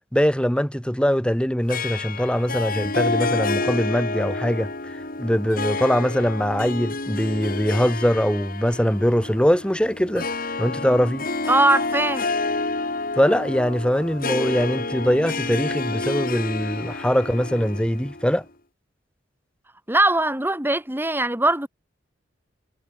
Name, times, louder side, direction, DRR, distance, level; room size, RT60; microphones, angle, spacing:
voice 1, 0.1-4.7 5.2-10.3 10.6-11.3 13.2-18.4, equal, 5° left, 3.2 m, -22 dB
Harp, 1.7-18.4, left 3 dB, 50° left, 5.4 m, -29 dB
voice 2, 11.5-12.2 19.9-21.7, right 2 dB, 10° right, 4.1 m, -20 dB
head